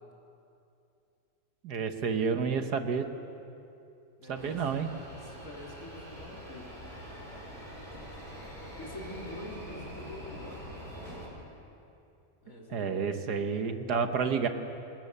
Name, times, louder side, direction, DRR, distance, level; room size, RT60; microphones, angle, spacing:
voice 1, 1.6-3.1 4.3-4.9 12.7-14.5, right 5 dB, 70° right, 7 dB, 1.7 m, -30 dB
voice 2, 4.2-4.8 5.1-6.8 8.8-10.7 12.4-13.2, left 1 dB, 50° left, -2 dB, 3.9 m, -46 dB
sound 1, 4.3-11.3, equal, 30° right, 5.5 m, -44 dB
27.5 x 19.5 x 6.8 m, 2.6 s
omnidirectional pair, 1.8 m